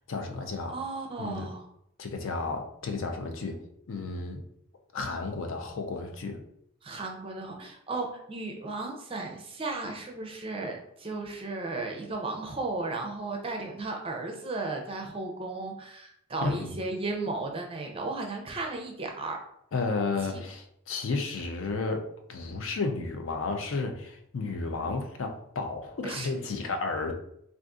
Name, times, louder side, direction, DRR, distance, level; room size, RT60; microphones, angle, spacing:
voice 1, 0.1-0.7 1.2-1.5 2.0-3.6 3.9-4.4 4.9-6.4 16.4-16.7 19.7-27.1, left 3 dB, 70° left, 4 dB, 0.5 m, -32 dB
voice 2, 0.7-1.7 6.8-19.4 20.3-20.4 26.0-26.3, right 3 dB, 25° right, 2 dB, 0.5 m, -35 dB
2.5 x 2.4 x 3.6 m, 0.72 s
head